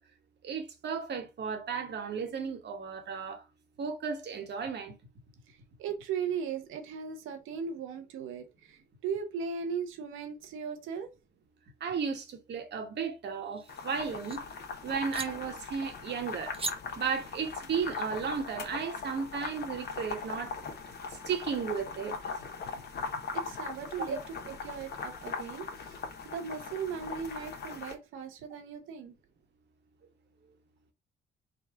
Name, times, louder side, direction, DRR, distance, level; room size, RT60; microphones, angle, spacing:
voice 1, 0.4-3.4 3.8-5.0 11.8-14.4 14.8-16.6 17.0-20.6 21.1-22.3 30.4-30.5, right 6 dB, 60° right, 1.3 m, -34 dB
voice 2, 5.5-11.1 23.3-24.2 24.4-26.0 26.3-29.1, right 6 dB, 90° right, 1.0 m, -37 dB
sound 1, 13.3-14.4 15.1-15.3 16.5-16.8, right 4 dB, 30° right, 0.7 m, -39 dB
sound 2, 13.7-27.9, left 5 dB, 55° left, 1.1 m, -40 dB
3.8 x 2.4 x 4.5 m
cardioid pair, 90°, 20 cm